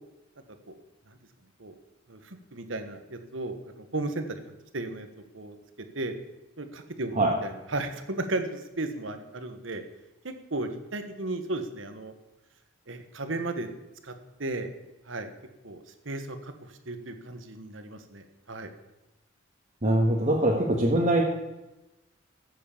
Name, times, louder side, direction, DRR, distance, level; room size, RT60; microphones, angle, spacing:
voice 1, 2.1-4.4 4.7-5.1 5.3-5.6 5.9-6.1 6.6-9.8 10.2-12.1 12.9-13.7 14.0-14.1 14.4-14.7 15.1-15.3 15.6-18.7 20.1-20.3, right 2 dB, 80° right, 8 dB, 1.4 m, -35 dB
voice 2, 19.8-21.2, right 1 dB, 35° right, -3 dB, 1.7 m, -23 dB
15.0 x 7.6 x 7.2 m, 1.0 s
head